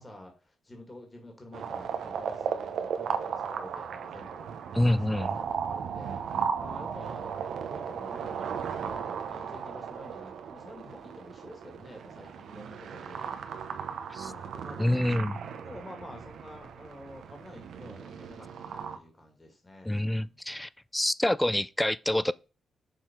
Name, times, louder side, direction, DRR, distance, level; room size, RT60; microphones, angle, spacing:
voice 1, 0.0-4.5 4.9-13.4 14.2-15.1 15.6-20.4, left 1 dB, 25° left, 2.0 m, -49 dB
sound 1, 1.5-19.0, right 7 dB, 80° right, 0.7 m, -36 dB
voice 2, 4.7-5.3 14.1-14.3 14.8-15.4 19.9-22.3, left 1 dB, 10° left, 0.3 m, -27 dB
6.3 x 3.8 x 4.5 m
cardioid pair, 60°, 0 cm